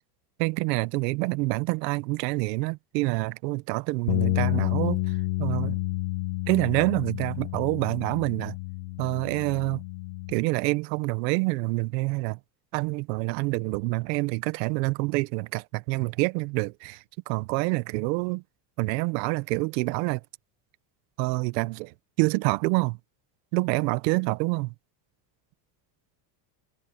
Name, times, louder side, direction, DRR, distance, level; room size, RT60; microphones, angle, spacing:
voice 1, 0.4-5.8 6.5-8.6 9.0-9.8 10.3-12.4 12.7-18.4 18.8-20.2 21.2-23.0 23.5-24.7, right 25 dB, 85° right, 1.0 m, -27 dB
sound 1, 4.1-10.3, left 21 dB, 80° left, 1.2 m, -30 dB
cardioid pair, 145°, 49 cm